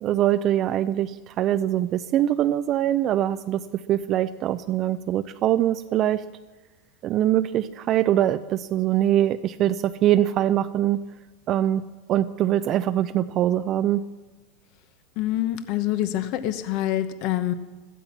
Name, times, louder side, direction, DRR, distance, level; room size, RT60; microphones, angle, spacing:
voice 1, 0.0-3.6 3.9-6.2 7.0-11.0 11.5-11.8 12.1-14.0, right 12 dB, 40° right, 10 dB, 0.5 m, -23 dB
voice 2, 15.2-17.5, left 13 dB, 55° left, 11 dB, 0.9 m, -26 dB
15.0 x 13.0 x 7.2 m, 1.2 s
supercardioid pair, 135°, 0 cm